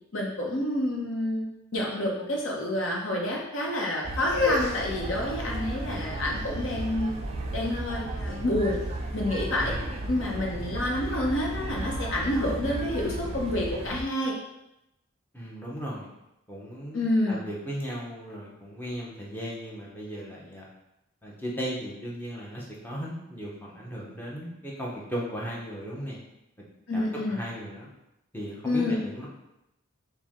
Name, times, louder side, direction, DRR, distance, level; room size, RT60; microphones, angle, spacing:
voice 1, 0.1-1.5 1.7-7.2 7.5-8.8 9.1-9.8 10.1-14.4 16.9-17.4 26.9-27.4 28.6-29.0, left 1 dB, 65° left, -2 dB, 0.8 m, -28 dB
sound 1, 4.0-14.0, right 1 dB, 30° right, 0.3 m, -34 dB
sound 2, 4.1-10.1, left 3 dB, 50° left, 1.4 m, -34 dB
voice 2, 9.6-10.1 15.3-16.1 16.5-20.7 21.2-26.2 26.9-27.0 27.3-27.9 28.3-29.3, equal, 10° left, -4 dB, 0.7 m, -36 dB
4.4 x 2.2 x 3.5 m, 0.89 s
head